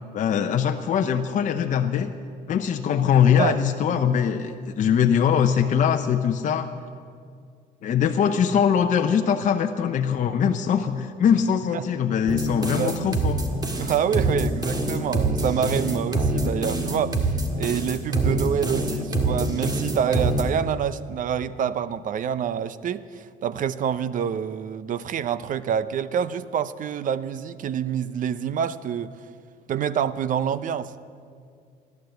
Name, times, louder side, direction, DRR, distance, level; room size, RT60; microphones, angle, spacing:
voice 1, 0.1-2.1 2.5-6.7 7.8-13.4, left 8 dB, 50° left, 5 dB, 0.8 m, -22 dB
sound 1, 12.3-20.4, right 2 dB, 25° right, 1.9 m, -25 dB
voice 2, 13.8-29.1 29.7-30.9, right 8 dB, 50° right, 15 dB, 0.7 m, -27 dB
15.5 x 12.0 x 7.9 m, 2.2 s
cardioid pair, 110°, 17 cm